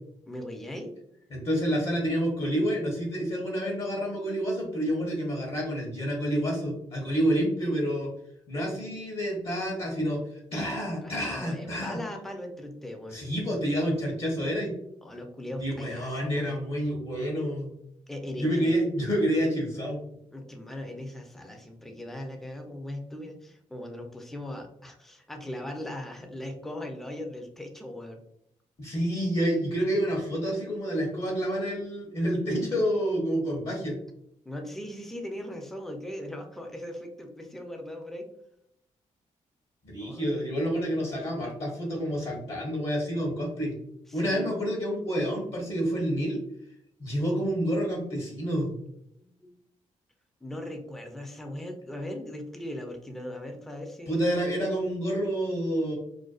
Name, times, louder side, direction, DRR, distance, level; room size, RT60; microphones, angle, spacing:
voice 1, 0.3-0.9 11.0-13.2 15.0-16.6 18.1-18.7 20.3-28.2 34.4-38.3 40.0-40.2 44.1-44.5 49.2-49.5 50.4-54.3, left 1 dB, ahead, 3 dB, 0.5 m, -39 dB
voice 2, 1.3-8.1 8.5-10.2 10.5-12.0 13.1-14.7 15.6-17.7 18.4-20.0 28.8-34.0 39.8-43.7 44.1-46.4 47.0-48.7 54.1-55.9, equal, 45° left, -2 dB, 0.8 m, -28 dB
2.5 x 2.2 x 2.3 m, 0.75 s
cardioid pair, 65°, 14 cm